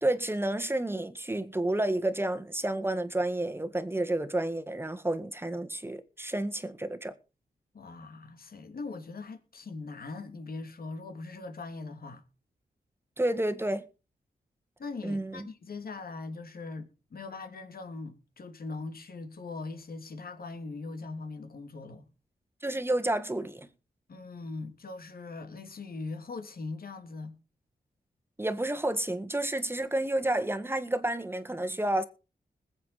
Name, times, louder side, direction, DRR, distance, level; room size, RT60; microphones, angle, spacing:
voice 1, 0.0-7.1 13.2-13.9 15.0-15.5 22.6-23.7 28.4-32.0, right 1 dB, 15° right, 1.7 m, -30 dB
voice 2, 7.7-12.2 14.8-22.1 24.1-27.4, left 3 dB, 65° left, 2.8 m, -41 dB
20.5 x 8.3 x 4.2 m
wide cardioid pair, 85°, 16 cm